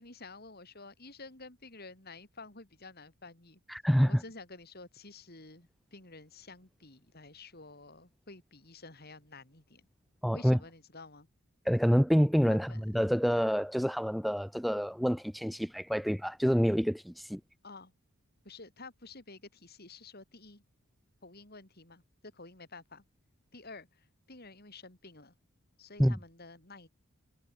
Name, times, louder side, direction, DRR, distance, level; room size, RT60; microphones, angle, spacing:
voice 1, 0.0-3.6 4.1-9.9 10.3-11.3 12.5-12.9 17.6-17.9 18.4-20.6 21.2-23.0 23.5-25.3 25.8-26.9, left 3 dB, 45° left, 3.9 m, -51 dB
voice 2, 3.7-4.2 10.2-10.6 11.7-17.4 26.0-26.2, equal, ahead, 0.6 m, -27 dB
head